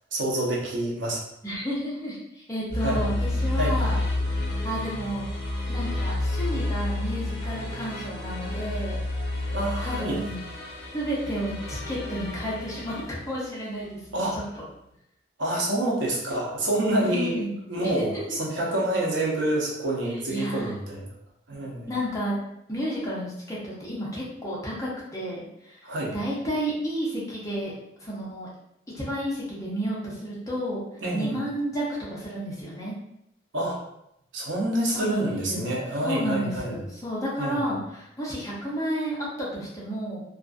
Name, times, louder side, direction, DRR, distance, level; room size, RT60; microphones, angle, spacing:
voice 1, 0.1-1.2 2.8-3.0 3.6-3.8 9.5-10.2 14.1-14.4 15.4-21.1 21.5-21.9 25.8-26.1 31.0-31.4 33.5-33.8 34.3-36.7 37.4-37.7, right 1 dB, 80° right, -3 dB, 0.7 m, -27 dB
voice 2, 1.4-4.0 4.6-5.3 5.7-9.0 9.8-10.4 10.9-14.6 17.0-17.5 17.8-18.0 20.3-20.7 21.9-22.4 22.7-25.8 26.1-27.7 28.0-28.5 28.9-30.8 31.1-31.8 32.1-32.9 34.9-35.7 36.0-40.2, equal, 15° left, -6 dB, 0.6 m, -31 dB
sound 1, 2.7-13.2, left 1 dB, 25° right, 1.1 m, -30 dB
sound 2, 2.8-13.0, left 2 dB, 65° left, 0.5 m, -42 dB
2.4 x 2.4 x 2.3 m, 0.80 s
head